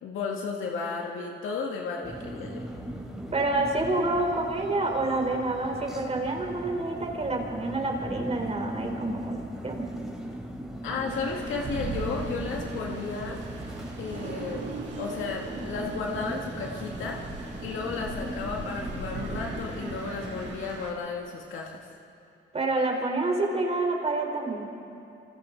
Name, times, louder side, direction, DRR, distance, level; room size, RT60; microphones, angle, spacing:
voice 1, 0.0-2.6 10.8-13.4 14.0-14.7 15.0-17.2 17.6-21.9, left 4 dB, 80° left, -1 dB, 2.1 m, -33 dB
sound 1, 2.0-20.5, equal, ahead, 3.6 m, -38 dB
voice 2, 3.3-9.9 22.5-24.7, right 2 dB, 30° right, 1 dB, 4.5 m, -28 dB
sound 2, 11.1-20.9, right 3 dB, 70° right, 5.6 m, -39 dB
27.5 x 27.0 x 4.1 m, 2.8 s
cardioid pair, 90°, 20 cm